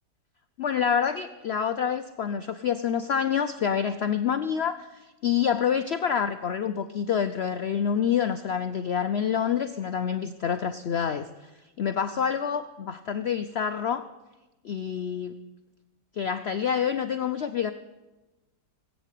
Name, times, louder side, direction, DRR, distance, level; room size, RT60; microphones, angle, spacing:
voice 1, 0.6-11.5 11.8-14.0 14.6-15.3 16.1-17.7, left 8 dB, 75° left, 10 dB, 0.6 m, -27 dB
17.0 x 8.3 x 8.3 m, 1.1 s
omnidirectional pair, 1.8 m